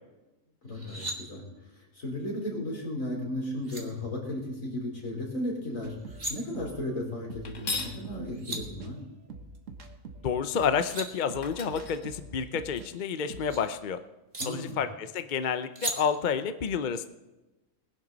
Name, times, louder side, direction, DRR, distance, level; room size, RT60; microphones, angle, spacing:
voice 1, 0.6-1.4 1.8-5.9 6.3-9.0 14.4-14.8, left 1 dB, 85° left, -2 dB, 4.3 m, -35 dB
sound 1, 0.7-1.2 3.2-3.3 3.6-3.8 5.9-6.3 8.0-8.1 8.3-8.6 10.5-11.1 12.6-13.6 14.3-14.5 15.8-16.0, right 2 dB, 45° right, 2.1 m, -36 dB
sound 2, 5.8-12.9 13.2-13.7, right 3 dB, 70° right, 1.6 m, -45 dB
sound 3, 7.4-8.0 10.9-11.0 11.4-12.8, left 4 dB, 65° left, 1.6 m, -37 dB
voice 2, 10.2-14.0 14.4-17.1, left 7 dB, 45° left, 10 dB, 0.7 m, -29 dB
19.5 x 11.0 x 4.0 m, 1.1 s
omnidirectional pair, 1.4 m